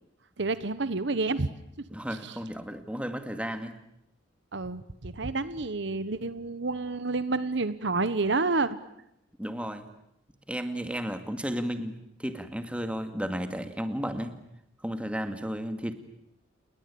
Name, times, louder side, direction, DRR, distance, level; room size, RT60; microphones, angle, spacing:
voice 1, 0.4-1.5 2.1-2.4 4.5-8.8, right 3 dB, 65° right, 14 dB, 1.2 m, -29 dB
voice 2, 1.9-3.7 9.4-9.8 10.5-14.3 14.8-15.9, equal, 5° right, 8 dB, 2.2 m, -33 dB
29.0 x 21.5 x 8.6 m, 0.78 s
head